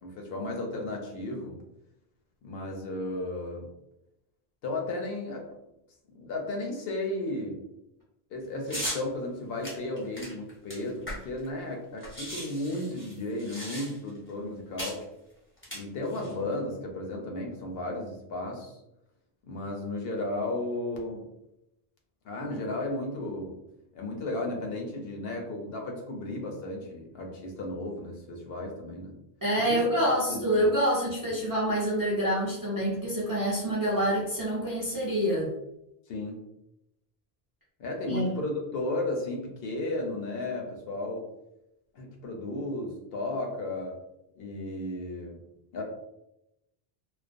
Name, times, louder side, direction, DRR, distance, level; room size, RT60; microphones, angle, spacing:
voice 1, 0.0-1.6 2.4-3.7 4.6-5.5 6.1-7.6 8.3-15.0 15.7-18.7 19.5-21.2 22.2-23.6 23.9-29.2 29.5-30.7 31.3-31.4 36.1-36.5 37.8-41.3 41.9-44.0 44.4-45.4 45.7-45.8, left 2 dB, 70° left, 1 dB, 0.8 m, -34 dB
sound 1, 8.7-9.0 9.6-11.5 11.7-11.8 12.0-14.2 14.8-15.0 15.6-16.3, equal, 15° left, 0.6 m, -37 dB
voice 2, 29.4-35.5 38.1-38.3, equal, 30° right, -6 dB, 0.4 m, -27 dB
2.3 x 2.1 x 2.4 m, 0.86 s
omnidirectional pair, 1.1 m